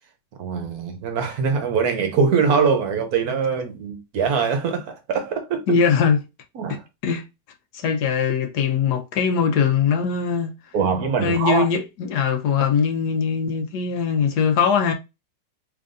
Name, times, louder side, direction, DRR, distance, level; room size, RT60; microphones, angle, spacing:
voice 1, 0.4-5.6 6.6-6.8 10.7-11.6, right 5 dB, 65° right, 1.1 m, -22 dB
voice 2, 5.7-6.2 6.7-7.2 7.7-10.5 11.2-14.9, left 6 dB, 70° left, 1.2 m, -21 dB
3.7 x 3.3 x 2.5 m
omnidirectional pair, 1.9 m